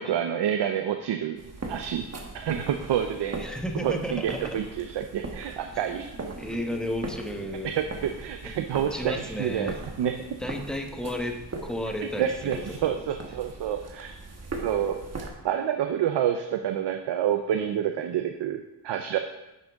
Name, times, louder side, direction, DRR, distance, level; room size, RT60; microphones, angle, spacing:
voice 1, 0.0-1.4 1.7-2.1 2.3-3.4 3.8-6.1 7.6-10.4 12.2-14.2 14.6-19.2, right 9 dB, 90° right, 6 dB, 0.6 m, -28 dB
sound 1, 1.4-15.3, right 3 dB, 40° right, 1.3 m, -40 dB
voice 2, 3.4-4.6 6.4-7.7 8.4-8.5 8.9-9.8 10.4-11.4 11.6-13.1, left 1 dB, ahead, 3 dB, 1.1 m, -33 dB
10.5 x 6.5 x 3.6 m, 0.97 s
cardioid pair, 90°, 41 cm